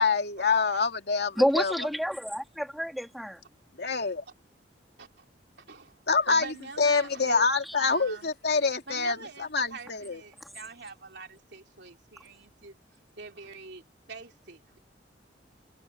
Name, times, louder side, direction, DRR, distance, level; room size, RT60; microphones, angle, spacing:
voice 1, 0.0-1.7 3.8-4.2 6.1-6.5 6.8-10.2, left 4 dB, 65° left, 2.6 m, -26 dB
voice 2, 1.4-3.4 7.7-7.8, equal, ahead, 3.8 m, -28 dB
voice 3, 5.7-8.3 8.9-12.8 13.2-13.8 14.1-14.8, right 4 dB, 65° right, 3.5 m, -45 dB
head